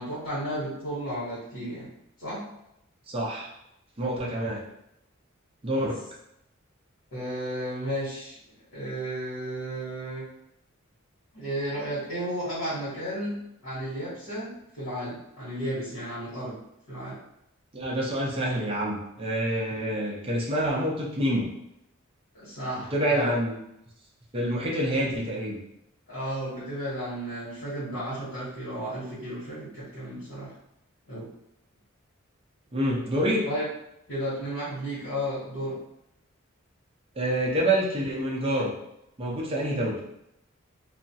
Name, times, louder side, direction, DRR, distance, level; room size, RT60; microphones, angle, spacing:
voice 1, 0.0-1.9 2.2-2.5 5.8-5.9 7.1-8.4 8.7-10.3 11.3-16.6 16.9-17.2 22.3-23.3 26.1-30.5 31.1-31.3 33.1-33.7 34.1-35.8, equal, 75° left, -12 dB, 1.0 m, -33 dB
voice 2, 3.1-3.5 4.0-4.6 5.6-6.0 17.7-21.5 22.9-23.5 24.3-25.6 32.7-33.5 37.2-38.7 39.2-40.0, right 1 dB, 25° right, -3 dB, 0.5 m, -27 dB
2.3 x 2.0 x 2.6 m, 0.81 s
head